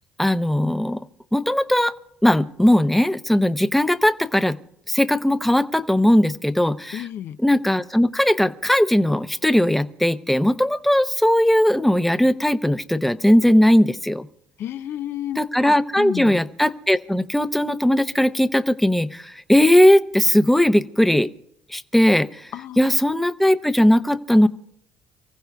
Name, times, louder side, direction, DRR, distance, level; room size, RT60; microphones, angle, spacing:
voice 1, 0.2-1.0 1.3-1.9 2.2-4.6 4.9-7.0 7.4-14.3 15.4-21.3 21.7-22.5 22.8-24.5, left 1 dB, 5° left, 0.8 m, -18 dB
voice 2, 6.9-7.4 14.6-16.4 22.5-23.2, left 11 dB, 65° left, 0.6 m, -32 dB
29.5 x 15.0 x 2.4 m
supercardioid pair, 70°, 4 cm